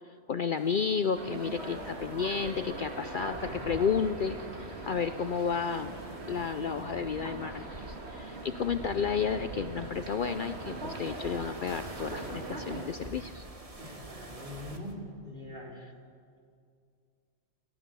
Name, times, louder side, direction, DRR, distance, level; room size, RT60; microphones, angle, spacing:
voice 1, 0.3-5.9 6.3-13.4, left 6 dB, 55° left, 10 dB, 0.7 m, -32 dB
sound 1, 0.5-14.9, right 2 dB, 30° right, 1.6 m, -47 dB
sound 2, 1.1-12.8, right 2 dB, 60° right, 2.4 m, -41 dB
voice 2, 13.8-14.9 15.2-15.7, left 2 dB, 45° right, -3 dB, 5.0 m, -43 dB
29.0 x 13.5 x 7.0 m, 2.2 s
omnidirectional pair, 1.2 m